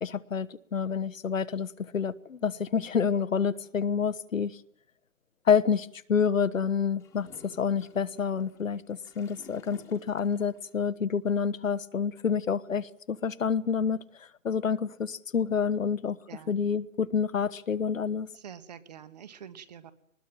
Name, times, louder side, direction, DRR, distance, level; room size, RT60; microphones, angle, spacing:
voice 1, 0.0-1.7 1.9-4.6 5.5-14.0 14.4-16.2 16.5-18.3, left 6 dB, 65° left, 1.3 m, -28 dB
Gurgling / Toilet flush, 7.0-10.7, left 5 dB, 5° left, 1.9 m, -54 dB
voice 2, 16.3-16.7 18.3-19.9, right 8 dB, 30° right, 1.6 m, -46 dB
23.0 x 20.5 x 9.0 m
hypercardioid pair, 165°, 42 cm